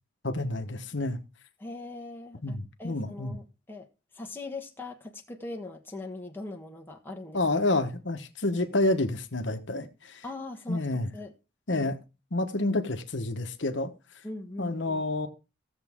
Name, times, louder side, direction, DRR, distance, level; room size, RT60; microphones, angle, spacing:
voice 1, 0.2-1.2 2.4-3.4 7.3-10.2 10.7-11.1 11.7-12.0 12.3-13.9 14.6-15.3, left 2 dB, 60° left, 1.2 m, -29 dB
voice 2, 1.6-3.9 4.1-7.4 10.2-11.3 11.7-11.9 14.2-15.0, left 2 dB, 10° left, 1.2 m, -41 dB
16.0 x 7.2 x 3.6 m
head